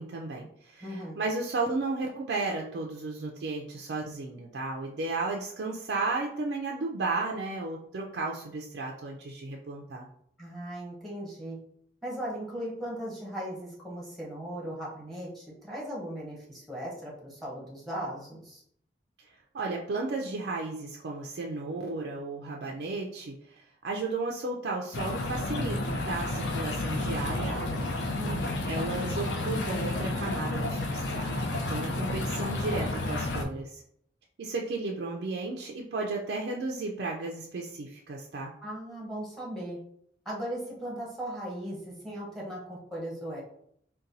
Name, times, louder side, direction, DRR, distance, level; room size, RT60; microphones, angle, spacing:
voice 1, 0.0-10.1 19.5-27.9 28.7-33.8 34.4-38.5, right 3 dB, 65° right, -1 dB, 0.4 m, -34 dB
voice 2, 0.8-1.2 10.4-11.6 12.0-18.6 28.2-28.6 38.6-39.8 40.2-43.4, right 1 dB, ahead, -5 dB, 0.9 m, -38 dB
sound 1, 24.9-33.5, left 2 dB, 70° left, 0.5 m, -31 dB
4.0 x 2.2 x 2.6 m, 0.68 s
head